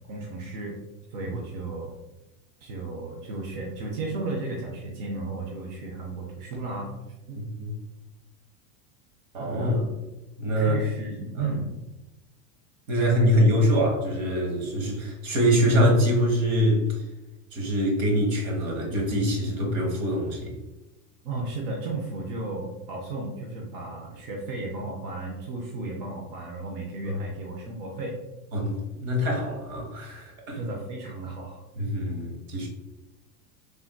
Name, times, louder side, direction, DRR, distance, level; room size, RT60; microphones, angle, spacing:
voice 1, 0.1-0.8 1.1-1.9 2.6-6.9 7.3-7.4 9.4-10.0 10.6-11.7 21.2-28.2 30.5-31.6, right 3 dB, 45° right, -2 dB, 0.5 m, -34 dB
voice 2, 7.3-7.8 9.3-9.7 10.4-10.8 11.3-11.5 12.9-17.0 17.5-20.5 27.0-27.1 28.5-30.6 31.8-32.7, equal, 60° right, 0 dB, 1.2 m, -24 dB
3.4 x 2.6 x 2.2 m, 0.99 s
supercardioid pair, 160°, 43 cm